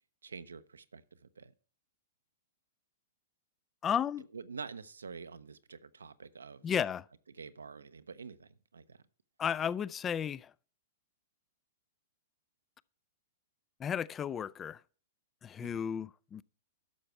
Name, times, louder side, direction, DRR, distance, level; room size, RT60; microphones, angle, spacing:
voice 1, 0.2-1.5 4.3-6.8 7.3-9.0 15.6-15.8, right 5 dB, 85° right, 0.7 m, -47 dB
voice 2, 3.8-4.2 6.6-7.0 9.4-10.5 13.8-14.8 15.4-16.4, left 8 dB, 20° left, 0.3 m, -33 dB
11.5 x 6.8 x 4.5 m
hypercardioid pair, 115°, 0 cm